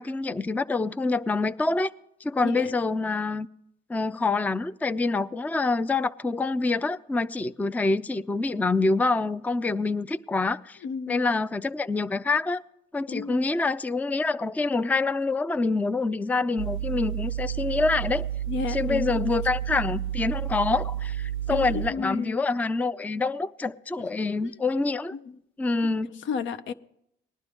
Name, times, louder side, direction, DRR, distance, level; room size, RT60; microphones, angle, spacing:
voice 1, 0.0-1.9 2.2-3.5 3.9-10.8 11.1-12.6 12.9-18.2 18.7-25.1 25.6-26.1, left 3 dB, 10° left, 0.4 m, -26 dB
voice 2, 10.8-11.3 13.1-13.4 18.5-19.4 21.5-22.4 24.4-24.5 25.1-25.2 25.8-26.7, left 5 dB, 75° left, 0.7 m, -32 dB
sound 1, 16.6-21.9, right 11 dB, 85° right, 0.4 m, -31 dB
19.5 x 11.0 x 3.5 m
cardioid pair, 90°, 20 cm